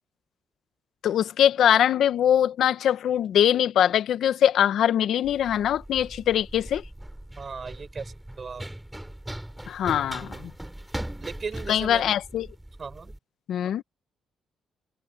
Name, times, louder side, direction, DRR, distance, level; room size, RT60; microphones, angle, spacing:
voice 1, 1.0-6.8 9.7-10.5 11.7-12.5 13.5-13.8, left 10 dB, 70° left, 1.4 m, -22 dB
Run, 5.2-13.2, right 1 dB, 5° right, 6.3 m, -39 dB
voice 2, 7.4-8.7 10.1-10.5 11.2-12.2 12.8-13.1, right 5 dB, 40° right, 7.7 m, -37 dB
cardioid pair, 90°, 0 cm